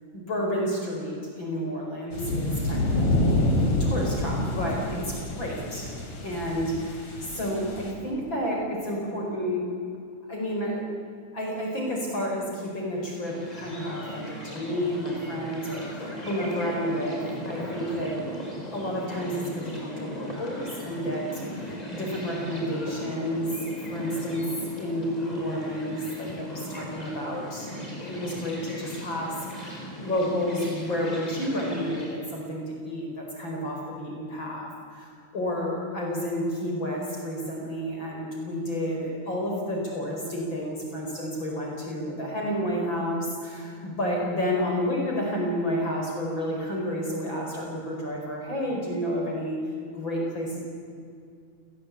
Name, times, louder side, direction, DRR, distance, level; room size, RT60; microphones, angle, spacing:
voice 1, 0.3-2.8 3.1-3.2 3.6-5.9 6.2-9.7 10.3-10.9 11.3-23.5 23.9-24.5 24.8-49.6 49.9-50.6, equal, 40° left, -1 dB, 5.5 m, -30 dB
sound 1, 2.1-7.9, left 1 dB, 65° left, 5.1 m, -27 dB
sound 2, 13.2-32.1, equal, 10° left, 5.3 m, -38 dB
29.0 x 18.5 x 8.5 m, 2.4 s
omnidirectional pair, 3.4 m